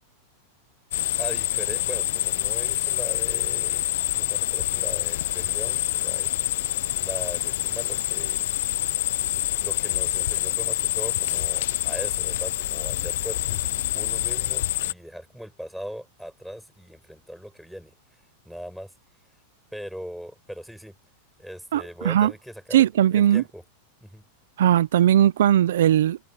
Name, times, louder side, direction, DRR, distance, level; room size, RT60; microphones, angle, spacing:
sound 1, 0.9-14.9, left 14 dB, 70° left, 0.5 m, -26 dB
voice 1, 1.2-6.3 6.9-8.4 9.6-13.7 13.9-17.9 18.4-18.9 19.7-20.9 21.4-22.8 23.1-23.6 24.0-24.2, equal, ahead, 6.3 m, -39 dB
voice 2, 21.7-22.3 22.7-23.4 24.6-26.2, right 11 dB, 85° right, 0.5 m, -19 dB
supercardioid pair, 165°, 0 cm